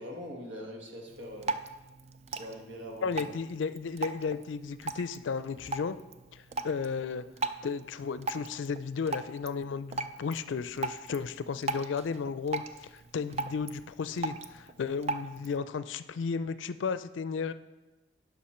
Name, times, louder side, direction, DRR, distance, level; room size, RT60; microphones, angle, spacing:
voice 1, 0.0-1.5 2.3-3.2 7.1-7.2, equal, 85° right, 1 dB, 1.5 m, -42 dB
Drip, 1.1-15.6, right 3 dB, 35° right, 0.4 m, -39 dB
voice 2, 3.0-6.0 6.3-7.3 7.6-17.5, left 5 dB, 85° left, 14 dB, 0.4 m, -34 dB
10.5 x 5.8 x 4.3 m, 1.1 s
head